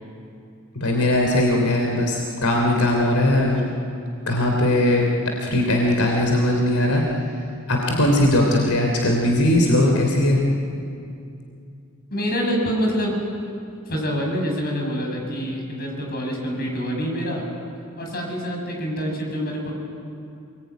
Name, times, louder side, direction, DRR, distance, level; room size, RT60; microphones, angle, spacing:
voice 1, 0.7-3.7 4.3-7.2 7.7-10.4, left 1 dB, 80° left, 1 dB, 3.2 m, -19 dB
voice 2, 12.1-13.2 13.9-17.4 18.0-19.8, equal, 45° left, 1 dB, 7.3 m, -26 dB
28.0 x 21.0 x 9.4 m, 2.5 s
head